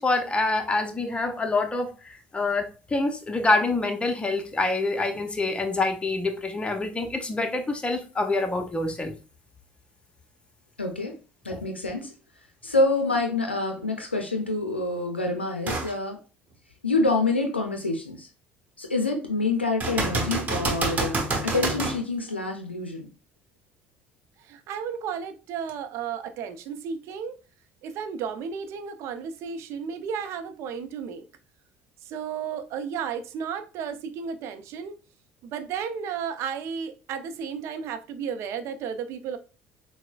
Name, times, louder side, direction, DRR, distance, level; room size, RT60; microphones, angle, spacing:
voice 1, 0.0-9.2 11.5-11.6, left 2 dB, 20° left, 0.7 m, -26 dB
voice 2, 10.8-11.2 11.4-12.1 12.6-16.2 16.8-18.3 18.8-23.1, left 3 dB, 90° left, 0.5 m, -27 dB
sound 1, 15.7-15.9 16.5-16.6 19.8-22.0 25.7-25.8, right 3 dB, 30° right, 1.2 m, -27 dB
voice 3, 24.4-27.3 27.8-31.2 32.0-35.0 35.4-39.4, right 7 dB, 55° right, 0.5 m, -33 dB
5.8 x 2.1 x 2.3 m
figure-of-eight pair, 60°, 6 cm